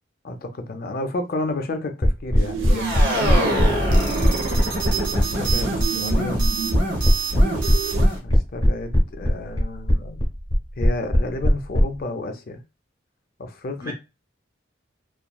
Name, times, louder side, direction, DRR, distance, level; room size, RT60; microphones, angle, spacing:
voice 1, 0.2-3.1 5.1-6.5 8.2-10.2 10.8-12.6 13.4-13.9, left 2 dB, 50° left, 0.5 m, -31 dB
sound 1, 2.0-11.8, equal, 20° left, 0.9 m, -18 dB
sound 2, 2.4-8.1, right 6 dB, 90° right, 0.3 m, -32 dB
sound 3, 2.7-8.2, right 1 dB, 60° right, 0.8 m, -25 dB
voice 2, 3.1-3.8 13.8-13.9, equal, 20° right, 0.8 m, -31 dB
3.0 x 2.4 x 2.2 m
head